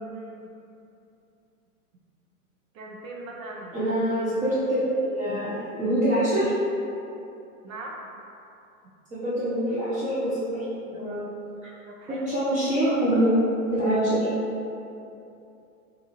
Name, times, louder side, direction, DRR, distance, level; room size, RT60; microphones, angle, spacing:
voice 1, 0.1-0.5 2.7-3.8 7.6-8.0 11.9-12.2, right 2 dB, 65° right, -1 dB, 0.7 m, -40 dB
voice 2, 3.7-6.5 9.1-11.2 11.6-11.7 12.1-13.3 13.7-14.3, right 1 dB, 15° right, -11 dB, 0.6 m, -25 dB
3.7 x 2.6 x 3.0 m, 2.7 s
hypercardioid pair, 110°, 44 cm